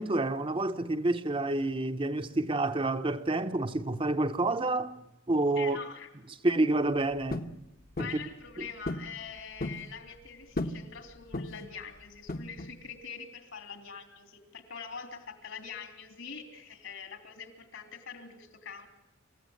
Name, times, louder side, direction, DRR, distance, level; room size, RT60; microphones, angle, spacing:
voice 1, 0.0-5.8 6.4-7.5 8.0-8.2 8.6-8.7, right 2 dB, 25° right, 0.8 m, -29 dB
voice 2, 5.6-6.1 6.4-6.5 8.0-18.9, left 6 dB, 65° left, 3.4 m, -44 dB
sound 1, 7.3-7.6 8.0-8.2 8.9-9.1 9.4-9.9 10.6-10.9 11.3-11.7 12.3-12.8, left 2 dB, 45° left, 1.2 m, -35 dB
28.0 x 15.5 x 9.7 m
head